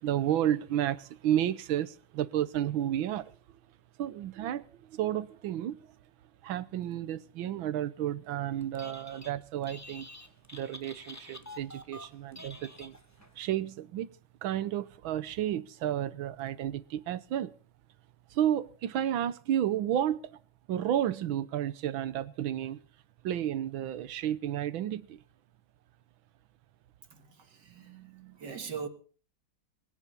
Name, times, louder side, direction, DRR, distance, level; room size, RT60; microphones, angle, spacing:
voice 1, 0.0-3.4 4.0-6.0 6.4-10.1 10.5-13.0 13.4-14.1 14.4-17.5 18.3-20.4 20.7-22.8 23.2-25.2, right 11 dB, 80° right, 1.7 m, -32 dB
Telephone, 8.6-9.3 9.6-13.3, left 1 dB, 10° left, 0.8 m, -48 dB
voice 2, 27.1-28.9, right 6 dB, 60° right, 2.2 m, -42 dB
22.0 x 10.0 x 5.4 m
omnidirectional pair, 2.2 m